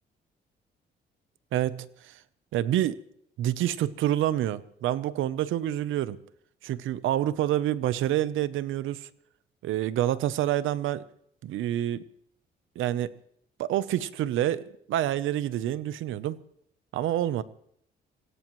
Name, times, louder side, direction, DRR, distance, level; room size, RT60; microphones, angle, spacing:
voice 1, 1.5-2.2 2.5-3.0 3.4-6.2 6.6-9.1 9.6-11.0 11.4-12.0 12.8-13.1 13.6-14.6 14.9-16.4 16.9-17.4, right 12 dB, 85° right, 16 dB, 0.8 m, -27 dB
25.5 x 17.0 x 3.2 m, 0.68 s
cardioid pair, 90°, 20 cm